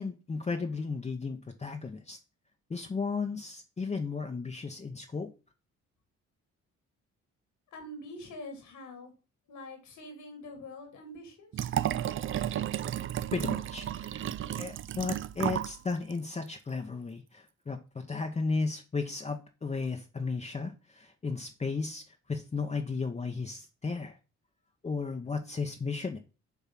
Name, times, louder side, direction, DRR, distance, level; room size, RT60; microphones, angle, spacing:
voice 1, 0.0-2.2 2.7-5.3 13.3-14.2 14.6-24.2 24.8-26.2, left 4 dB, 20° left, 5 dB, 0.8 m, -34 dB
voice 2, 7.7-9.1 9.5-11.5, left 1 dB, 80° left, 4 dB, 2.9 m, -45 dB
Liquid, 11.5-15.8 16.1-16.2, right 11 dB, 45° right, 0.4 m, -33 dB
7.1 x 3.5 x 5.9 m, 0.33 s
cardioid pair, 90°, 30 cm